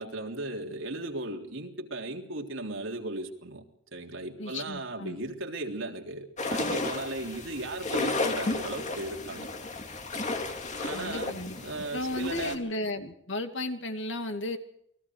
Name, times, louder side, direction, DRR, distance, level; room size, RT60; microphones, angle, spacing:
voice 1, 0.0-3.6 3.9-9.5 10.8-12.6, right 2 dB, 75° right, 1 dB, 3.6 m, -36 dB
voice 2, 4.4-5.2 10.9-11.6 11.9-14.6, left 1 dB, 65° left, 6 dB, 2.5 m, -34 dB
sound 1, 6.4-12.6, left 2 dB, 35° left, 2.4 m, -33 dB
29.0 x 21.0 x 4.8 m, 0.73 s
head